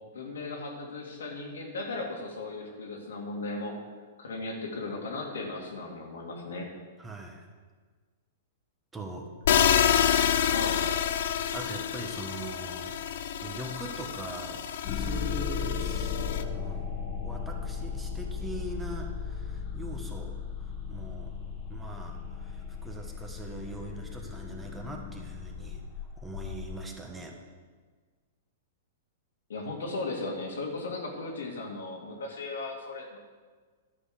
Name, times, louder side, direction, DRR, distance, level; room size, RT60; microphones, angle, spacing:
voice 1, 0.1-3.8 4.2-6.7 10.5-10.8 29.5-33.2, left 2 dB, 85° left, 0 dB, 2.3 m, -36 dB
voice 2, 7.0-7.5 8.9-9.3 10.2-10.3 11.5-13.0 13.4-16.9 17.2-21.3 21.7-25.8 26.2-27.4, right 2 dB, 10° right, 1 dB, 1.3 m, -42 dB
sound 1, 9.4-16.4, left 9 dB, 65° left, 0.6 m, -28 dB
sound 2, 14.8-26.8, left 6 dB, 40° left, 1.3 m, -36 dB
11.0 x 5.5 x 6.7 m, 1.5 s
hypercardioid pair, 135°, 0 cm